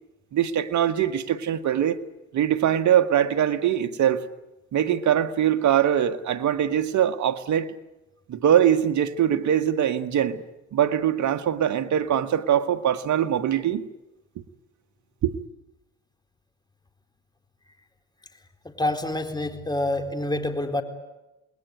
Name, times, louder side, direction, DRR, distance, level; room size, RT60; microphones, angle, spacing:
voice 1, 0.3-2.0 2.3-4.2 4.7-7.7 8.3-10.4 10.7-13.9 15.2-15.3, right 10 dB, 55° right, 1.9 m, -22 dB
voice 2, 18.6-20.8, left 1 dB, 10° left, 4.0 m, -27 dB
28.5 x 20.0 x 9.6 m
supercardioid pair, 70°, 33 cm